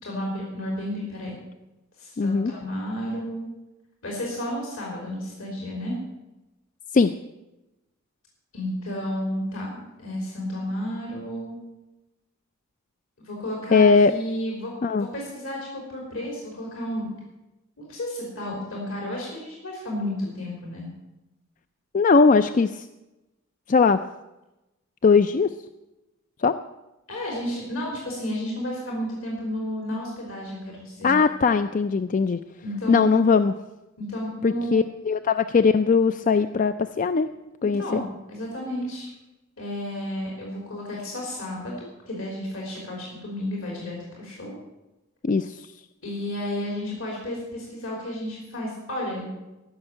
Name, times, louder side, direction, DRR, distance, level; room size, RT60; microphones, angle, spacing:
voice 1, 0.0-1.4 2.0-3.5 4.0-6.0 8.5-11.5 13.2-17.1 17.8-20.9 27.1-31.1 32.6-33.1 34.0-34.8 37.7-39.1 39.6-44.5 46.0-49.3, left 1 dB, 85° left, -2 dB, 3.5 m, -32 dB
voice 2, 2.2-2.5 6.9-7.1 13.7-14.1 14.8-15.1 21.9-22.9 23.7-24.0 25.0-25.5 26.4-26.6 31.0-32.4 32.9-33.5 34.4-37.3 37.6-38.0 45.2-45.7, left 4 dB, 40° left, 10 dB, 0.4 m, -20 dB
14.5 x 6.5 x 8.8 m, 1.0 s
head